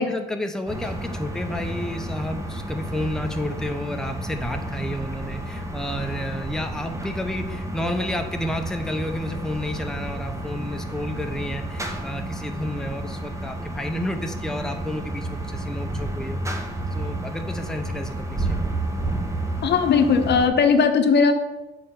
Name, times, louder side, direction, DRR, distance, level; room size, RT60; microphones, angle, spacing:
voice 1, 0.0-16.6 16.9-18.7, left 1 dB, 5° left, 4 dB, 0.7 m, -31 dB
sound 1, 0.7-20.5, right 1 dB, 15° right, 1.1 m, -31 dB
voice 2, 19.6-21.3, left 5 dB, 60° left, 7 dB, 0.9 m, -18 dB
6.7 x 4.5 x 5.8 m, 1.1 s
cardioid pair, 90°, 20 cm